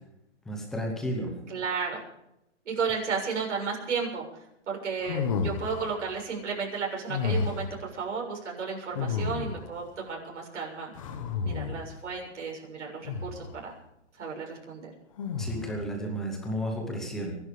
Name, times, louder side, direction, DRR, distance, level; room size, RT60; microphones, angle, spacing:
voice 1, 0.5-1.3 15.4-17.3, equal, ahead, 1 dB, 0.7 m, -32 dB
voice 2, 1.5-2.0 2.7-4.3 4.7-7.7 7.9-10.9 11.4-13.7 14.2-14.9, right 5 dB, 70° right, -1 dB, 6.9 m, -33 dB
sound 1, 5.0-6.0 7.1-7.8 8.9-9.8 10.9-12.0 13.0-13.6 15.2-15.9, left 5 dB, 25° left, 1.3 m, -31 dB
24.0 x 11.0 x 5.1 m, 0.85 s
hypercardioid pair, 175°, 37 cm